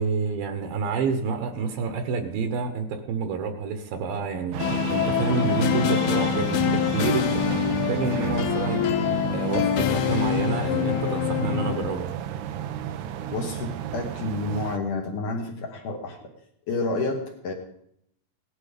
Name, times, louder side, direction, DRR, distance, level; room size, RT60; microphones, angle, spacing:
voice 1, 0.0-8.8 9.3-12.1, right 5 dB, 75° right, 7 dB, 2.6 m, -28 dB
sound 1, 4.5-14.8, right 10 dB, 90° right, 1.7 m, -32 dB
sound 2, 4.6-12.0, left 10 dB, 85° left, 2.9 m, -25 dB
voice 2, 13.3-16.3 16.7-17.5, left 2 dB, 65° left, 1 dB, 2.6 m, -29 dB
17.0 x 11.0 x 5.1 m, 0.74 s
omnidirectional pair, 4.5 m